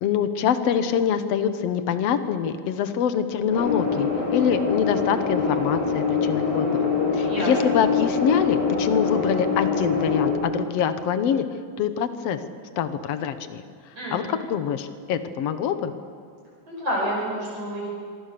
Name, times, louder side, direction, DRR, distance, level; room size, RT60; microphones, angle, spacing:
voice 1, 0.0-11.4 11.8-12.4 12.8-13.6 14.1-15.9, left 8 dB, 65° left, 10 dB, 1.7 m, -25 dB
sound 1, 3.5-10.3, left 5 dB, 45° left, 5.8 m, -24 dB
voice 2, 16.7-17.9, equal, 40° right, -5 dB, 7.0 m, -28 dB
26.0 x 24.5 x 6.9 m, 2.1 s
omnidirectional pair, 4.3 m